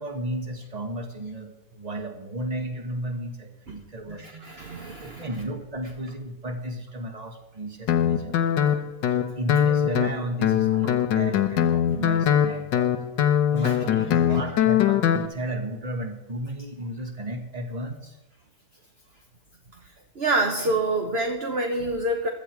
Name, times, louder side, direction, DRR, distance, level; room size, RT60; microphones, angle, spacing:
voice 1, 0.0-4.4 4.9-8.6 9.1-13.0 13.5-18.2, right 1 dB, 20° right, 5 dB, 1.7 m, -34 dB
voice 2, 4.2-5.3 10.8-10.9 13.6-13.8 14.2-14.4 20.1-22.3, right 2 dB, 40° right, 3 dB, 1.3 m, -27 dB
Guitar, 7.9-15.3, left 10 dB, 80° left, 1.6 m, -22 dB
16.5 x 12.0 x 4.7 m, 1.0 s
omnidirectional pair, 1.9 m